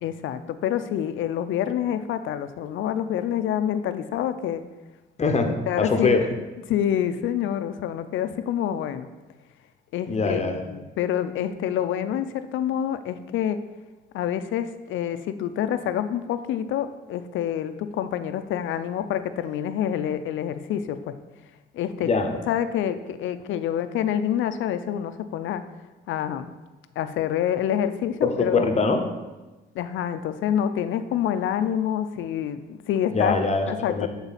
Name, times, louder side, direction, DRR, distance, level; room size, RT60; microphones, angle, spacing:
voice 1, 0.0-4.6 5.7-6.1 6.7-9.1 9.9-13.6 14.1-21.1 21.7-22.1 22.5-25.6 26.1-26.5 27.0-28.7 29.7-32.6 32.9-33.4 33.7-34.1, left 10 dB, 75° left, 11 dB, 0.5 m, -27 dB
voice 2, 5.2-6.2 10.1-10.7 22.0-22.3 28.2-29.0 33.1-34.1, left 4 dB, 35° left, 5 dB, 0.8 m, -23 dB
7.2 x 3.9 x 4.1 m, 1.2 s
cardioid pair, 90°, 20 cm